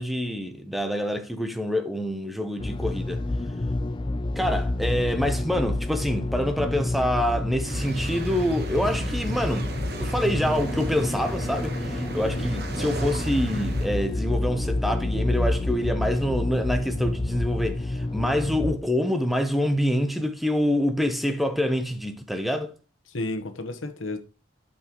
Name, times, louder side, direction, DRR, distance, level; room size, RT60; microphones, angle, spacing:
voice 1, 0.0-3.2 4.4-9.7 10.0-22.7, equal, ahead, 0.7 m, -26 dB
sound 1, 2.6-18.7, left 2 dB, 25° left, 0.4 m, -29 dB
sound 2, 7.6-13.9, right 1 dB, 55° right, 1.2 m, -34 dB
voice 2, 23.1-24.2, left 2 dB, 90° left, 1.2 m, -32 dB
12.0 x 5.4 x 3.0 m
head